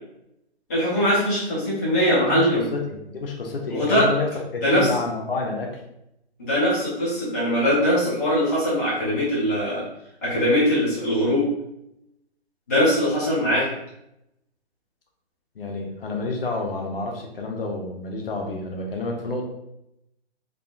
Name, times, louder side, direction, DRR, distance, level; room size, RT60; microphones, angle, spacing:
voice 1, 0.7-2.7 3.7-4.1 4.6-4.9 6.4-9.8 10.2-11.5 12.7-13.7, equal, 15° left, -10 dB, 0.5 m, -21 dB
voice 2, 2.3-5.8 15.6-19.5, left 3 dB, 55° left, 1 dB, 0.6 m, -29 dB
3.6 x 2.0 x 2.3 m, 0.84 s
hypercardioid pair, 155°, 33 cm